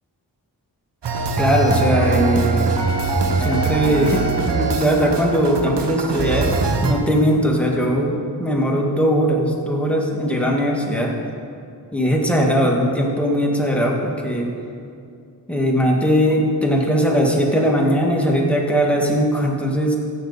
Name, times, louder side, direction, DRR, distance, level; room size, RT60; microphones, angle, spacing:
sound 1, 1.0-6.9, right 4 dB, 75° right, 1.0 m, -22 dB
voice 1, 1.4-2.7 3.4-11.1 11.9-14.5 15.5-19.9, equal, 5° left, -2 dB, 2.1 m, -19 dB
15.0 x 7.0 x 4.2 m, 2.4 s
cardioid pair, 40°, 42 cm